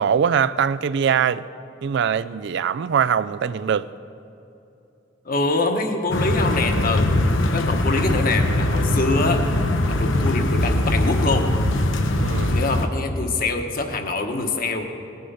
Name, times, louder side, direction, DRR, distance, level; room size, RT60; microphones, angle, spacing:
voice 1, 0.0-1.4 1.8-3.9 12.2-12.6, right 7 dB, 65° right, 0.3 m, -22 dB
voice 2, 5.2-7.1 7.5-9.4 9.9-11.5 12.5-14.9, left 3 dB, 50° left, 1.2 m, -24 dB
sound 1, 6.1-12.9, left 1 dB, 85° left, 1.0 m, -21 dB
17.5 x 9.4 x 5.6 m
head